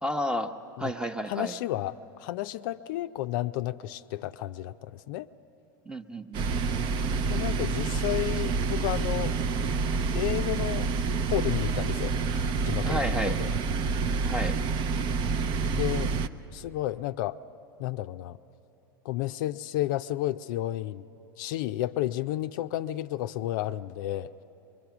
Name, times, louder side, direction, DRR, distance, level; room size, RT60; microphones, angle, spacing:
voice 1, 0.0-1.6 5.9-6.6 12.8-13.4 14.3-14.6, equal, 5° right, 8 dB, 0.8 m, -31 dB
voice 2, 1.3-5.3 7.3-9.4 10.1-10.9 11.3-13.5 15.7-16.1 16.5-17.4 17.8-18.4 19.0-21.0 21.4-24.3, left 14 dB, 65° left, 10 dB, 0.5 m, -32 dB
sound 1, 6.3-16.3, right 4 dB, 45° right, 0.6 m, -28 dB
23.0 x 22.5 x 6.0 m, 2.9 s
hypercardioid pair, 100°, 11 cm